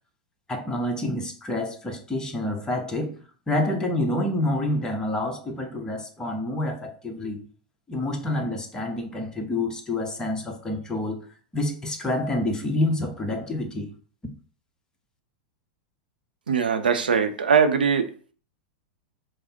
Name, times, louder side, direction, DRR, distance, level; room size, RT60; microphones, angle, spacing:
voice 1, 0.5-3.2 3.5-7.4 7.9-11.2 11.5-13.9, left 1 dB, 15° left, 3 dB, 0.9 m, -28 dB
voice 2, 16.5-18.0, right 6 dB, 90° right, 7 dB, 0.6 m, -21 dB
5.0 x 2.0 x 4.2 m, 0.41 s
hypercardioid pair, 105°, 5 cm